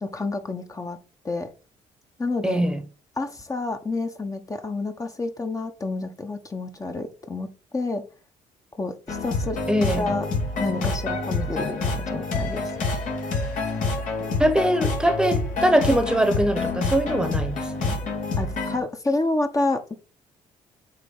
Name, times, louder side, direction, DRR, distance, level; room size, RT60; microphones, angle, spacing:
voice 1, 0.0-1.0 1.2-1.5 2.2-2.7 3.2-8.1 8.8-9.6 10.0-10.2 10.6-13.0 18.4-20.0, left 2 dB, 25° left, 1.2 m, -29 dB
voice 2, 2.4-2.8 9.7-10.1 14.4-18.0, right 1 dB, 5° right, 1.2 m, -22 dB
sound 1, 9.1-18.8, left 3 dB, 70° left, 3.3 m, -27 dB
8.4 x 3.2 x 5.4 m
supercardioid pair, 70°, 14 cm